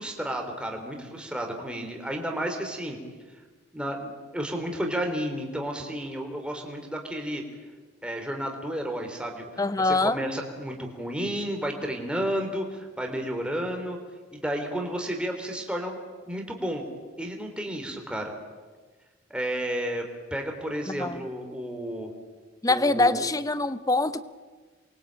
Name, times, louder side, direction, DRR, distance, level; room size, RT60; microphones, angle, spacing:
voice 1, 0.0-3.0 3.7-7.4 8.0-14.0 14.3-16.0 16.3-16.9 17.2-18.3 19.3-22.1 22.7-23.3, equal, 5° right, 2 dB, 3.5 m, -32 dB
voice 2, 9.6-10.2 20.9-21.2 22.6-24.2, left 2 dB, 15° left, 13 dB, 0.8 m, -24 dB
28.0 x 23.0 x 8.9 m, 1.4 s
head